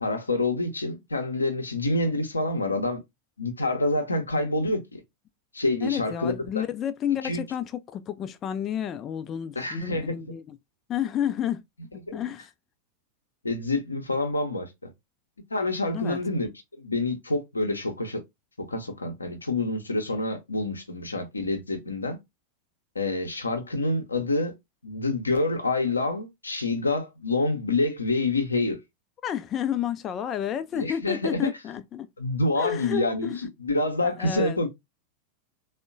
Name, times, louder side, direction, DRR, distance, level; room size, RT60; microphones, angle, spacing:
voice 1, 0.0-3.0 3.4-5.0 5.5-6.6 7.2-7.4 9.6-10.4 12.1-12.2 13.4-14.9 15.5-16.5 16.8-18.2 18.6-22.2 22.9-24.5 24.8-28.8 30.7-31.5 32.2-34.7, left 2 dB, 80° left, 0.6 m, -27 dB
voice 2, 5.8-10.6 10.9-11.6 11.9-12.5 15.9-16.2 29.2-32.1 32.5-33.4 34.0-34.6, left 9 dB, 30° left, 0.3 m, -30 dB
3.5 x 2.1 x 2.5 m
figure-of-eight pair, 90°, 0 cm